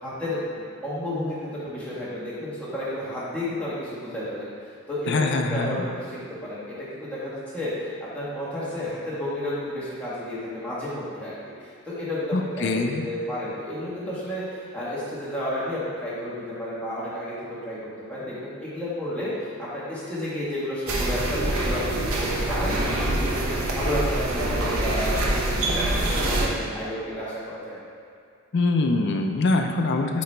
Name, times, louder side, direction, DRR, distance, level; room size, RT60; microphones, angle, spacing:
voice 1, 0.0-4.5 4.9-19.3 19.6-27.8, left 1 dB, 5° left, -10 dB, 1.5 m, -32 dB
voice 2, 5.1-5.9 12.3-13.0 28.5-30.2, left 3 dB, 50° left, 4 dB, 0.4 m, -24 dB
sound 1, 20.9-26.5, right 1 dB, 75° right, 0.8 m, -25 dB
8.4 x 2.9 x 4.4 m, 2.3 s
head